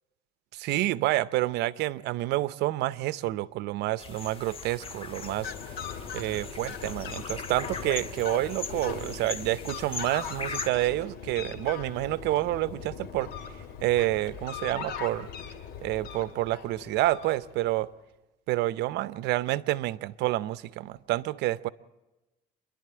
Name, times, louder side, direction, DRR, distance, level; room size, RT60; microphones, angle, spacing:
voice 1, 0.5-5.5 6.1-13.3 13.8-15.3 15.8-17.9 18.5-21.7, right 16 dB, 85° right, 0.7 m, -28 dB
sound 1, 4.0-10.7, left 4 dB, 35° left, 1.9 m, -40 dB
Fowl, 4.7-17.7, left 7 dB, 70° left, 2.9 m, -40 dB
28.5 x 11.5 x 8.6 m
cardioid pair, 110°, 17 cm